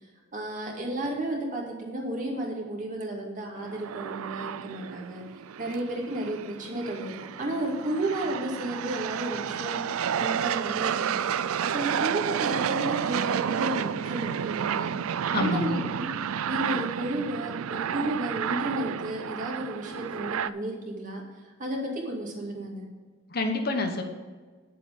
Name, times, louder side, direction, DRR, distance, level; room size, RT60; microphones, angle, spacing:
voice 1, 0.3-5.2 5.6-7.1 7.4-9.8 10.2-11.2 11.7-15.0 15.3-16.1 16.5-21.2 21.6-22.9, right 1 dB, 40° right, -1 dB, 2.3 m, -32 dB
sound 1, 3.6-20.5, right 8 dB, 85° right, 0.4 m, -31 dB
voice 2, 15.3-15.8 23.3-24.0, left 2 dB, 45° left, 5 dB, 1.1 m, -27 dB
10.0 x 7.8 x 5.4 m, 1.4 s
head